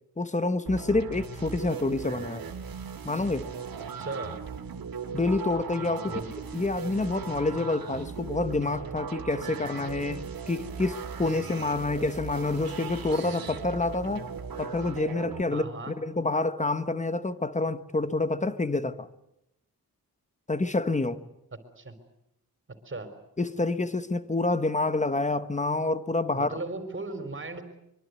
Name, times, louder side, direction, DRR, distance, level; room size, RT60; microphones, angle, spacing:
voice 1, 0.2-2.5 3.0-3.5 5.1-6.1 6.5-14.3 14.6-19.1 20.5-21.2 23.4-26.6, left 2 dB, 20° left, 1.2 m, -28 dB
sound 1, 0.7-15.4, right 6 dB, 65° right, 2.5 m, -38 dB
voice 2, 4.0-4.4 6.1-6.2 15.5-15.9 21.8-21.9 22.8-23.1 26.4-27.6, right 3 dB, 30° right, 4.0 m, -36 dB
24.5 x 23.5 x 9.5 m
wide cardioid pair, 145°, 38 cm